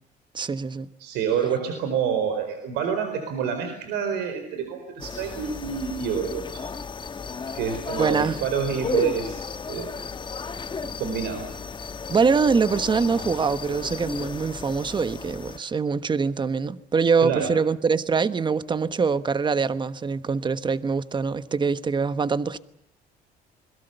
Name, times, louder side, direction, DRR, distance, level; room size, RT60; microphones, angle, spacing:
voice 1, 0.3-0.9 8.0-8.4 12.1-22.6, right 5 dB, 25° right, 1.2 m, -24 dB
voice 2, 1.0-6.6 7.5-10.0 10.8-11.5 17.2-17.5, right 7 dB, 90° right, 4.5 m, -28 dB
sound 1, 5.0-15.6, left 5 dB, 30° left, 1.3 m, -34 dB
28.0 x 22.0 x 6.9 m
cardioid pair, 110°, 17 cm